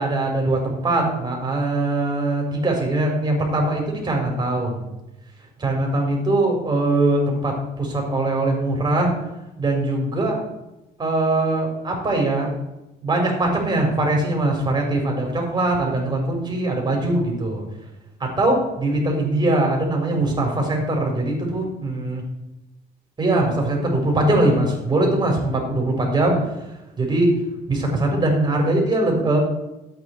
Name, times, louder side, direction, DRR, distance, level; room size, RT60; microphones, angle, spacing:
voice 1, 0.0-4.8 5.6-9.1 9.6-10.4 11.0-12.5 13.0-17.6 18.2-22.2 23.2-26.4 27.0-27.4 27.7-29.4, right 2 dB, 25° right, 1 dB, 4.5 m, -21 dB
12.0 x 8.7 x 4.6 m, 0.96 s
cardioid pair, 110°, 17 cm